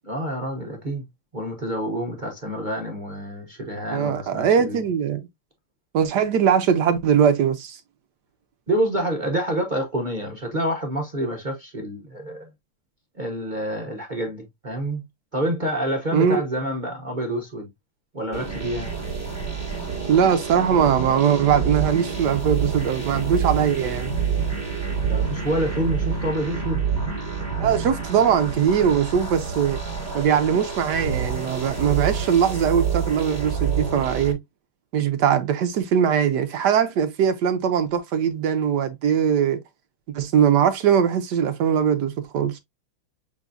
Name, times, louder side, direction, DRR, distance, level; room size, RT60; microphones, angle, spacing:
voice 1, 0.1-1.0 1.3-4.8 8.7-12.5 13.2-15.0 15.3-17.7 18.1-18.9 25.1-26.8, right 1 dB, 50° right, 0.5 m, -27 dB
voice 2, 3.9-5.2 5.9-7.8 16.1-16.4 20.1-24.1 27.6-29.8 30.1-34.4 34.9-39.6 40.1-42.6, right 8 dB, 70° right, 1.0 m, -21 dB
sound 1, 18.3-34.3, right 6 dB, 10° right, 1.6 m, -28 dB
6.9 x 2.7 x 2.5 m
omnidirectional pair, 2.3 m